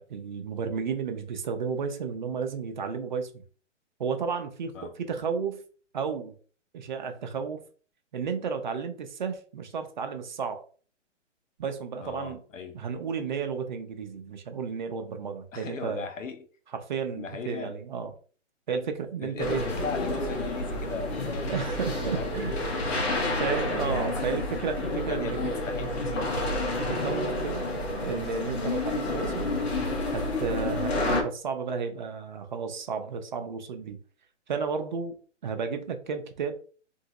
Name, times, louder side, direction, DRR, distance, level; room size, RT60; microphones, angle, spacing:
voice 1, 0.0-3.4 4.0-5.6 5.9-6.3 6.7-7.6 8.1-10.6 11.6-12.4 12.7-16.1 16.7-18.1 18.7-19.6 21.5-22.6 23.4-25.5 26.8-27.7 28.0-29.5 30.1-34.0 34.5-35.2 35.4-36.6, right 6 dB, 40° right, 0.5 m, -32 dB
voice 2, 12.0-12.8 15.5-16.4 17.2-17.8 19.2-26.3 26.7-26.9, left 5 dB, 90° left, 0.9 m, -38 dB
sound 1, 19.4-31.2, left 2 dB, 55° left, 1.2 m, -30 dB
2.9 x 2.6 x 2.8 m
hypercardioid pair, 150°, 37 cm